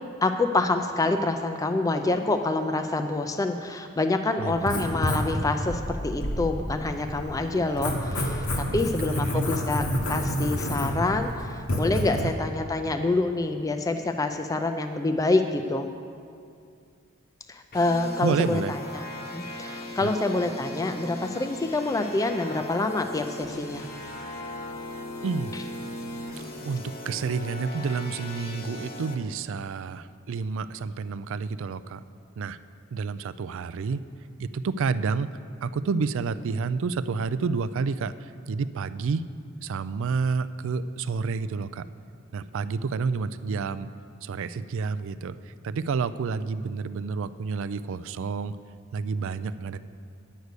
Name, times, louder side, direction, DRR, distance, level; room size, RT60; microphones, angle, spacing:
voice 1, 0.2-15.9 17.5-23.9 25.5-25.6, left 2 dB, 15° left, 6 dB, 0.4 m, -27 dB
voice 2, 4.4-4.7 8.6-9.5 12.1-12.3 18.2-18.7 20.0-20.1 25.2-25.5 26.6-32.0 32.4-32.6 32.9-34.1 34.4-39.2 39.6-41.9 42.3-43.9 44.2-48.6 48.9-49.8, right 5 dB, 60° right, 14 dB, 0.4 m, -29 dB
Writing, 4.5-12.2, equal, 80° left, 1.5 m, -29 dB
sound 1, 17.7-29.1, left 1 dB, 45° left, 1.0 m, -38 dB
9.3 x 6.5 x 8.2 m, 2.3 s
head